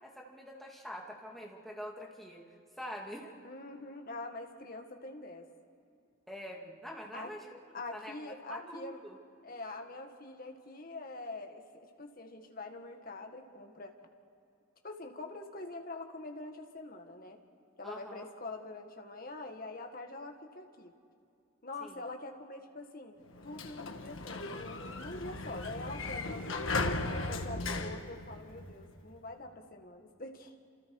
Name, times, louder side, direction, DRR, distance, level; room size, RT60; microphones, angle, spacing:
voice 1, 0.0-2.5 2.8-3.3 6.3-7.6 7.9-9.2 17.8-18.3 21.8-22.0, equal, ahead, -2 dB, 2.5 m, -45 dB
voice 2, 3.4-5.5 7.1-7.3 7.7-9.0 9.4-13.9 14.8-17.4 17.8-20.9 21.6-23.2 23.4-30.6, left 2 dB, 45° left, 4 dB, 1.8 m, -44 dB
Sliding door, 23.3-28.9, left 2 dB, 80° left, 1.5 m, -37 dB
29.5 x 27.5 x 4.8 m, 2.5 s
head